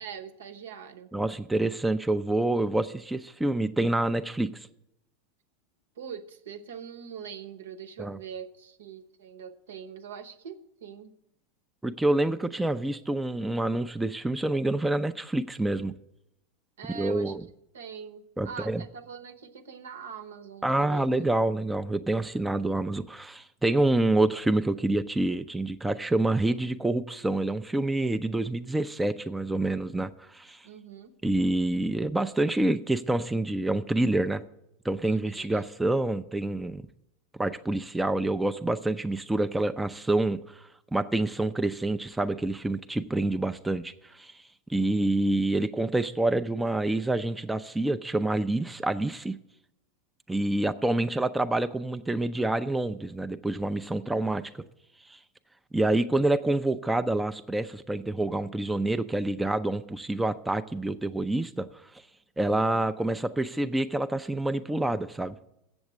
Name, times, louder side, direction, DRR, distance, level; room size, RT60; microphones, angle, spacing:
voice 1, 0.0-1.1 6.0-11.1 16.8-17.4 17.7-21.1 30.6-31.1 35.0-35.6 54.4-54.5, right 7 dB, 75° right, 0.9 m, -43 dB
voice 2, 1.1-4.7 8.0-8.2 11.8-15.9 16.9-17.4 18.4-18.8 20.6-30.7 31.2-34.4 34.8-36.8 37.3-44.4 44.7-49.4 50.3-54.5 55.1-55.2 55.7-62.0 62.4-65.3, right 2 dB, 5° right, 0.4 m, -27 dB
7.9 x 7.1 x 8.5 m
hypercardioid pair, 90°, 0 cm